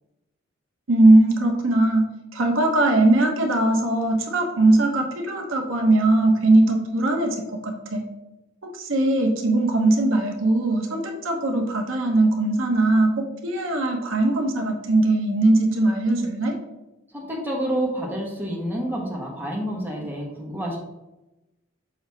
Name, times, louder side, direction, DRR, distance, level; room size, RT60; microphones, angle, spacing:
voice 1, 0.9-2.0 2.3-8.0 8.6-13.1 13.4-16.5, right 2 dB, 90° right, 2 dB, 1.1 m, -20 dB
voice 2, 17.1-20.8, right 1 dB, 10° right, -3 dB, 1.3 m, -28 dB
6.3 x 3.0 x 5.7 m, 0.98 s
head